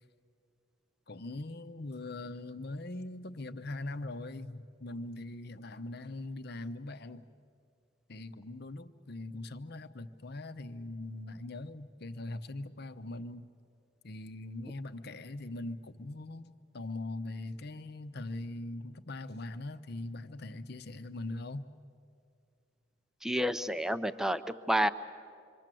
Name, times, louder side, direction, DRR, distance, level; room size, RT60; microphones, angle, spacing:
voice 1, 1.1-7.2 8.1-13.5 14.0-21.7, left 2 dB, 55° left, 10 dB, 0.9 m, -41 dB
voice 2, 23.2-24.9, equal, 5° right, 12 dB, 0.6 m, -30 dB
26.5 x 24.5 x 7.7 m, 2.3 s
head